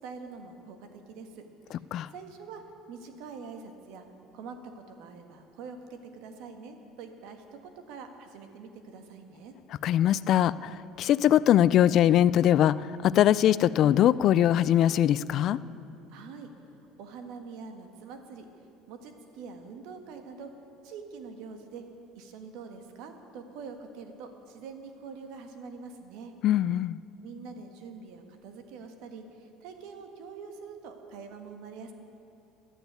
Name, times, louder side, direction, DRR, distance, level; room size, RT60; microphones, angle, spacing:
voice 1, 0.0-2.6 2.9-4.0 4.3-7.4 7.9-9.5 16.1-16.5 17.0-18.5 18.9-20.5 20.8-21.8 22.1-26.3 27.2-31.9, right 5 dB, 75° right, 6 dB, 1.5 m, -44 dB
voice 2, 9.8-15.6 26.4-27.0, left 11 dB, 55° left, 18 dB, 0.3 m, -22 dB
12.0 x 8.9 x 9.2 m, 2.7 s
supercardioid pair, 105°, 0 cm